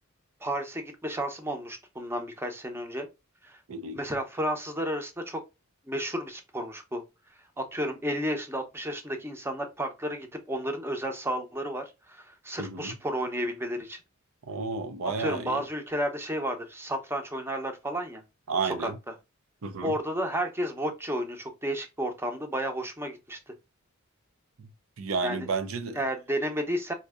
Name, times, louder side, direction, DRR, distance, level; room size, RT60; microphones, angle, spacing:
voice 1, 0.4-3.1 3.4-3.6 3.9-5.4 5.9-7.0 7.6-14.0 15.2-18.2 18.6-18.9 19.8-23.5 25.2-25.5 26.0-26.9, equal, 10° right, 0.7 m, -32 dB
voice 2, 3.7-4.0 12.6-13.0 14.5-15.6 18.5-19.0 19.6-19.9 24.6-24.7 25.0-26.0, right 4 dB, 70° right, 0.5 m, -32 dB
4.2 x 2.6 x 2.3 m
head